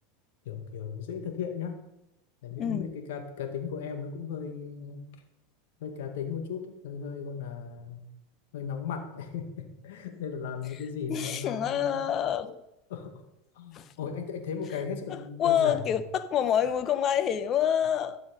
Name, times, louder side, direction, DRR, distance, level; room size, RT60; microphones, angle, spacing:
voice 1, 0.5-1.7 2.4-5.1 5.8-8.1 8.5-12.0 12.9-13.2 13.6-16.0, left 6 dB, 75° left, 1.9 m, -36 dB
voice 2, 2.6-2.9 11.1-12.6 13.7-13.9 15.1-18.2, left 9 dB, 40° left, 0.9 m, -27 dB
13.0 x 7.4 x 5.3 m
supercardioid pair, 115°, 0 cm